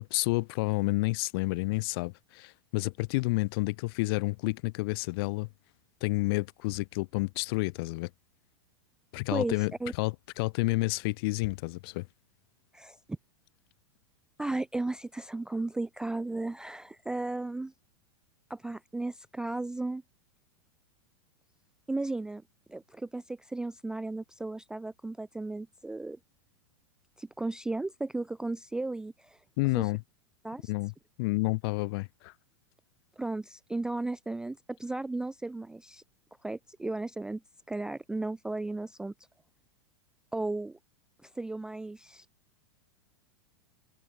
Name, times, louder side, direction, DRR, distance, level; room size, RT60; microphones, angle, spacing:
voice 1, 0.0-5.5 6.0-8.1 9.1-9.7 10.0-12.1 29.6-30.0 30.7-30.9 31.2-32.3, left 24 dB, 55° left, 1.8 m, -30 dB
voice 2, 9.3-9.9 12.7-13.0 14.4-17.7 18.5-20.0 21.9-22.4 22.7-26.2 27.2-29.4 29.8-29.9 30.4-30.7 33.2-36.0 36.4-37.4 37.7-39.1 40.3-40.8 41.2-42.3, right 2 dB, 5° right, 0.3 m, -35 dB
hypercardioid pair, 125°, 15 cm